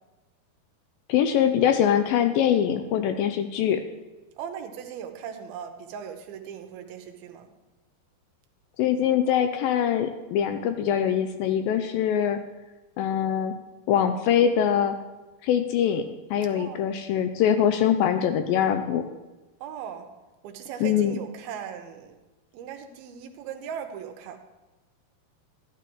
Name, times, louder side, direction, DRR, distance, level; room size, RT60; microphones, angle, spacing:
voice 1, 1.1-3.8 8.8-12.4 13.0-13.6 13.9-15.0 15.4-16.0 16.3-19.0 20.8-21.2, left 9 dB, 80° left, 8 dB, 2.1 m, -23 dB
voice 2, 4.4-7.5 16.6-16.8 19.6-20.1 20.4-22.1 22.5-24.4, right 8 dB, 80° right, 6 dB, 2.6 m, -38 dB
12.5 x 12.0 x 3.1 m, 1.1 s
omnidirectional pair, 4.5 m